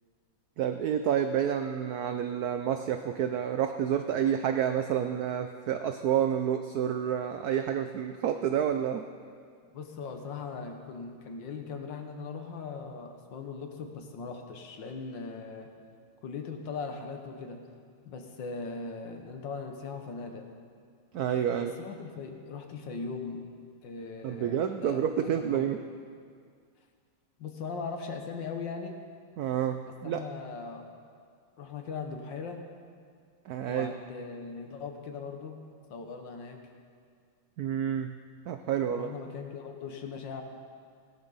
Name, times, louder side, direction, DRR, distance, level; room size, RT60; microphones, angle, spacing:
voice 1, 0.6-9.0 21.1-21.7 24.2-25.8 29.4-30.2 33.5-33.9 37.6-38.2 38.5-39.1, right 9 dB, 85° right, 7 dB, 0.8 m, -29 dB
voice 2, 9.7-15.7 16.2-17.6 18.1-20.5 21.4-23.5 23.8-25.7 27.4-29.0 29.9-30.9 31.6-32.6 33.7-35.6 35.9-36.6 38.9-40.4, left 4 dB, 65° left, 4 dB, 1.8 m, -39 dB
17.5 x 12.5 x 4.0 m, 2.1 s
omnidirectional pair, 2.2 m